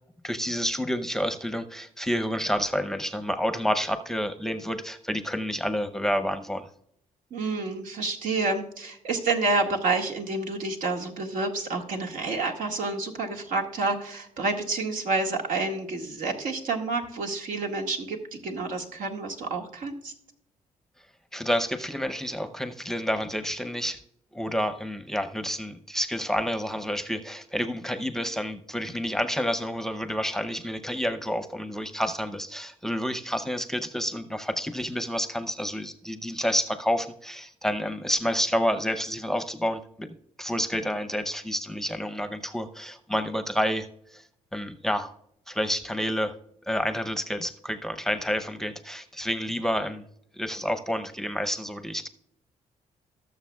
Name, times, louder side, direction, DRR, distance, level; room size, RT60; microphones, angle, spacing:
voice 1, 0.2-6.7 21.3-24.0 24.3-44.2 44.5-45.1 45.5-46.3 46.7-50.0 50.3-52.1, equal, 5° left, 9 dB, 0.7 m, -29 dB
voice 2, 7.3-20.1, right 3 dB, 80° right, 2 dB, 1.8 m, -29 dB
19.0 x 6.8 x 2.3 m, 0.72 s
cardioid pair, 95°, 13 cm